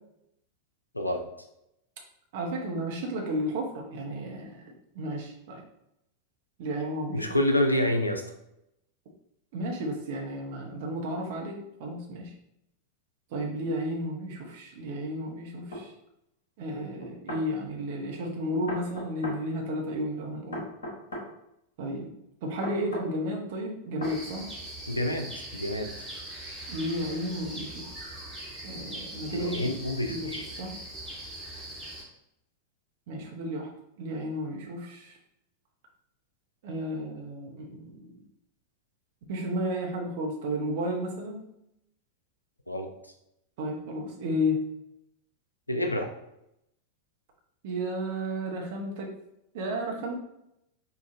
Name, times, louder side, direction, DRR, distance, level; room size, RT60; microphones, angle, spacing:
voice 1, 0.9-1.3 7.1-8.2 24.9-25.9 29.3-30.4 42.7-42.9 45.7-46.1, left 1 dB, 85° left, 4 dB, 0.4 m, -28 dB
voice 2, 2.3-4.6 4.9-5.6 6.6-7.3 9.5-12.3 13.3-15.9 16.6-20.7 21.8-22.1 22.4-24.5 26.7-27.9 28.6-29.6 30.1-30.3 30.6-30.7 33.1-33.7 34.0-35.1 36.6-38.1 39.3-41.5 43.6-44.6 47.6-49.1 49.5-50.2, equal, 50° right, 0 dB, 0.8 m, -33 dB
sound 1, 15.7-15.9 17.0-17.5 18.7-19.4 20.5-21.3 22.6-23.1 24.0-24.2, equal, 65° left, 0.9 m, -36 dB
sound 2, 24.0-32.0, right 1 dB, ahead, 1.4 m, -41 dB
4.8 x 2.4 x 2.6 m, 0.82 s
figure-of-eight pair, 90°, 0 cm